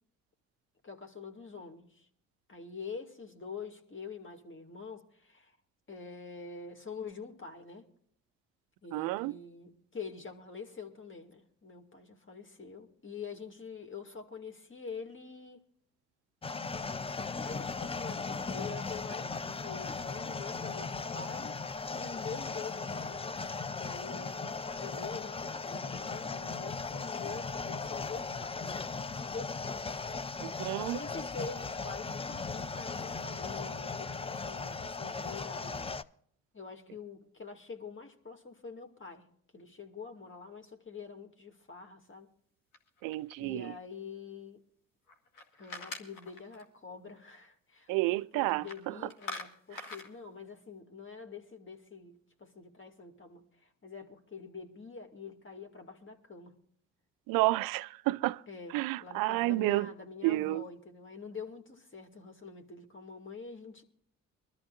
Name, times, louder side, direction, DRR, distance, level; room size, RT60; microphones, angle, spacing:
voice 1, 0.8-2.1 2.5-5.6 5.9-7.9 8.8-15.6 17.4-28.8 29.3-29.9 30.9-36.0 36.5-42.3 43.4-44.6 45.6-56.6 58.5-63.8, left 5 dB, 35° left, 2.4 m, -46 dB
voice 2, 8.9-9.3 30.4-31.0 43.0-43.7 47.9-48.6 57.3-58.4 58.7-59.9 60.2-60.6, right 20 dB, 70° right, 0.5 m, -30 dB
sound 1, 16.4-36.0, left 4 dB, 15° left, 0.5 m, -37 dB
sound 2, 42.7-43.7 45.1-46.7 48.5-48.8 49.1-50.1, left 2 dB, 65° left, 2.1 m, -44 dB
24.0 x 13.5 x 2.5 m
hypercardioid pair, 50°, 36 cm